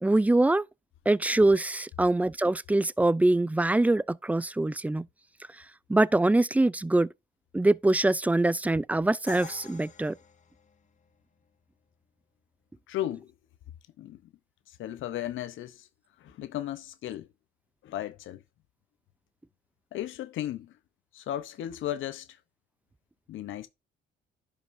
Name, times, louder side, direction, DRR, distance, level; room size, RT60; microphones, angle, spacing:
voice 1, 0.0-0.6 1.1-5.1 5.9-7.1 7.5-10.2, right 2 dB, 10° right, 0.3 m, -24 dB
Crash cymbal, 9.3-11.2, left 5 dB, 40° left, 1.1 m, -47 dB
voice 2, 12.9-13.3 14.0-14.2 14.7-15.9 16.2-17.3 17.8-18.4 19.9-20.7 21.1-22.4 23.3-23.7, left 12 dB, 80° left, 0.8 m, -35 dB
11.0 x 5.3 x 2.6 m
cardioid pair, 90°, 20 cm